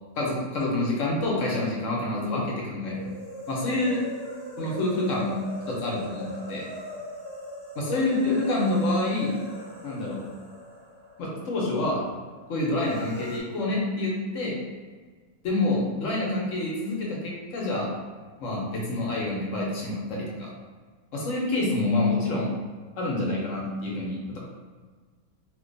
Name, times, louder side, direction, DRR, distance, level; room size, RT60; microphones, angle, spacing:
voice 1, 0.2-3.1 3.5-4.0 4.6-5.4 5.7-6.6 7.8-9.3 9.8-10.2 11.2-12.0 12.5-14.5 15.4-17.9 18.4-20.5 21.1-22.5 23.0-24.4, left 2 dB, 65° left, -3 dB, 1.1 m, -27 dB
sound 1, 2.9-11.8 12.0-12.1 12.8-13.4, left 1 dB, ahead, 0.9 m, -40 dB
2.8 x 2.2 x 3.8 m, 1.5 s
omnidirectional pair, 1.5 m